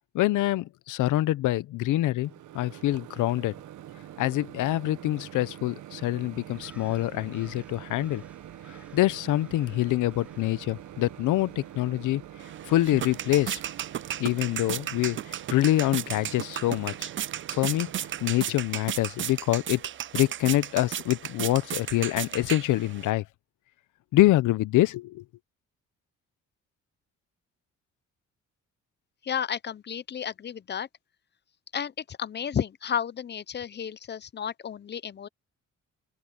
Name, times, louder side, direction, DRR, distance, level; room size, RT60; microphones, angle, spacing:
voice 1, 0.1-2.3 2.5-3.5 4.2-8.2 8.9-12.2 12.7-13.6 14.2-15.2 15.5-17.1 17.5-17.9 18.2-19.8 20.1-23.2 24.1-25.2, left 16 dB, 85° left, 0.9 m, -25 dB
Microwave oven, 2.2-18.5, right 12 dB, 75° right, 1.3 m, -45 dB
sound 1, 6.5-14.2, right 1 dB, 5° right, 4.8 m, -58 dB
sound 2, 12.4-23.1, right 10 dB, 40° right, 0.5 m, -35 dB
voice 2, 29.2-30.9 31.7-35.3, left 8 dB, 35° left, 0.7 m, -32 dB
open air
cardioid pair, 90°, 30 cm